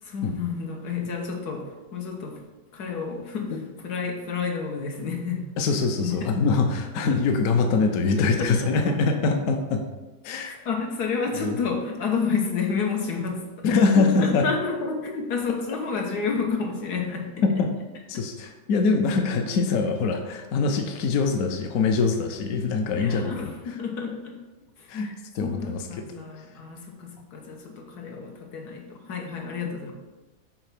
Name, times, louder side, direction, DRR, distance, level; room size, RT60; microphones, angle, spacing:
voice 1, 0.0-2.4 2.7-3.5 3.8-5.4 6.0-6.3 7.1-7.2 8.4-9.2 10.4-17.3 22.9-24.4 24.8-25.1 25.4-29.9, left 5 dB, 90° left, 1 dB, 1.6 m, -30 dB
voice 2, 5.6-9.8 10.2-10.6 11.4-11.6 13.6-14.5 17.4-17.7 18.1-23.5 24.9-25.8, left 4 dB, 70° left, 5 dB, 1.1 m, -23 dB
6.6 x 4.0 x 5.9 m, 1.2 s
omnidirectional pair, 1.6 m